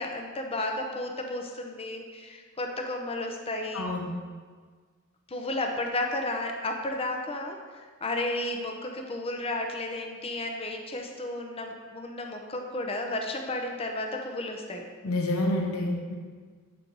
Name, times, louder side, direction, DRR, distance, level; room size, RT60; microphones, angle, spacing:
voice 1, 0.0-3.9 5.3-7.6 8.0-14.8, left 2 dB, 25° left, 3 dB, 0.7 m, -33 dB
voice 2, 3.7-4.1 15.0-16.1, left 1 dB, 90° left, 0 dB, 1.0 m, -28 dB
8.4 x 4.6 x 3.9 m, 1.5 s
head